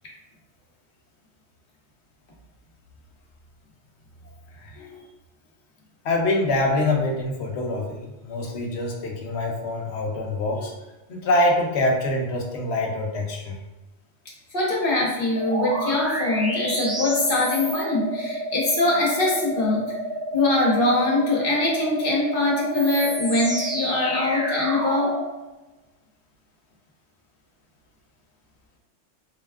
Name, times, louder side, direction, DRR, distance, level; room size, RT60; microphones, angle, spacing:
voice 1, 4.6-5.0 6.0-10.7 11.1-13.6 25.0-25.1, left 2 dB, 65° left, 0 dB, 0.9 m, -25 dB
voice 2, 14.5-19.9 20.3-25.1, left 2 dB, 50° left, -4 dB, 1.2 m, -23 dB
sound 1, 15.3-25.2, right 1 dB, 20° right, 0.4 m, -29 dB
4.0 x 2.3 x 3.5 m, 1.1 s
omnidirectional pair, 1.3 m